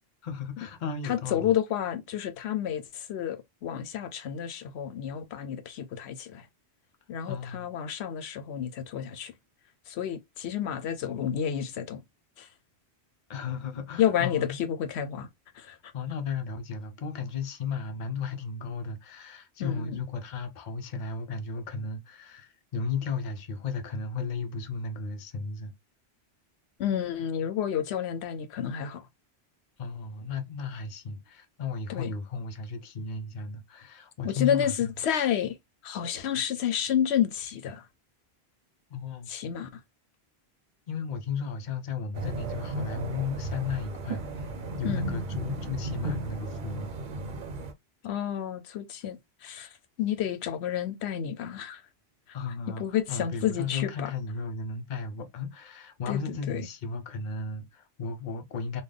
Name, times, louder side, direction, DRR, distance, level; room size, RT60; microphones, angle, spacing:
voice 1, 0.2-1.5 7.2-7.7 13.3-14.6 15.9-25.7 29.8-34.9 38.9-39.3 40.9-44.5 44.8-47.0 52.3-58.8, left 5 dB, 50° left, 0.7 m, -35 dB
voice 2, 1.0-6.5 7.1-9.3 9.9-12.0 12.4-12.5 14.0-15.3 15.5-15.8 19.6-20.0 26.8-29.0 31.9-32.1 34.2-35.6 35.8-37.9 39.3-39.8 44.8-45.1 48.0-49.7 50.0-51.8 52.8-54.1 56.1-56.7, left 9 dB, 85° left, 0.9 m, -30 dB
sound 1, 42.1-47.7, right 2 dB, 55° right, 0.7 m, -35 dB
3.8 x 2.3 x 3.3 m
omnidirectional pair, 1.1 m